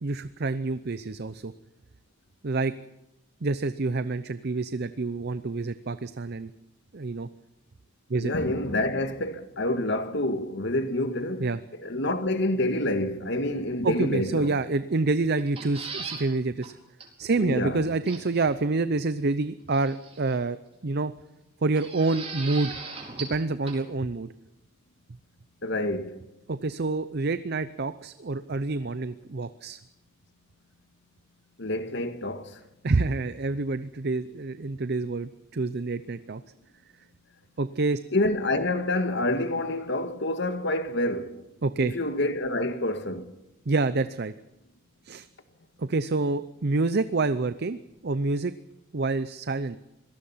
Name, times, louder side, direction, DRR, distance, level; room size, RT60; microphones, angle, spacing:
voice 1, 0.0-1.5 2.4-2.7 3.4-6.5 6.9-7.3 8.1-8.3 11.4-11.6 13.8-16.7 17.2-20.6 20.8-21.1 21.6-22.7 23.2-24.3 26.5-29.8 32.8-36.4 37.6-38.0 41.6-41.9 43.7-44.3 45.0-45.3 45.8-47.8 48.0-48.5 48.9-49.8, right 3 dB, 50° right, 0.6 m, -27 dB
voice 2, 8.2-11.5 11.8-14.5 17.4-17.8 25.6-26.2 31.6-32.6 38.1-41.4 41.8-43.3, left 1 dB, 60° left, 1.7 m, -27 dB
sound 1, 15.4-16.3 16.6-16.7 17.0-17.1 18.1-18.5 19.7-20.3 21.8-23.4 23.7-23.8, right 4 dB, 30° right, 4.4 m, -38 dB
25.5 x 18.5 x 5.7 m
head